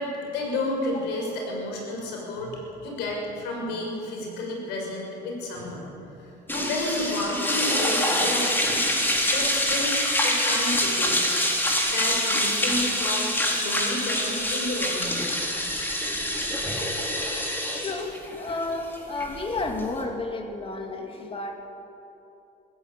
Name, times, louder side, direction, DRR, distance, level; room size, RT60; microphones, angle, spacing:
voice 1, 0.0-11.3 11.9-15.5, left 2 dB, 90° left, -1 dB, 6.2 m, -31 dB
sound 1, 6.5-20.0, left 1 dB, 10° left, 3.8 m, -25 dB
voice 2, 17.7-21.6, left 2 dB, 35° left, 4 dB, 2.6 m, -32 dB
22.0 x 15.5 x 8.7 m, 3.0 s
cardioid pair, 110°, 17 cm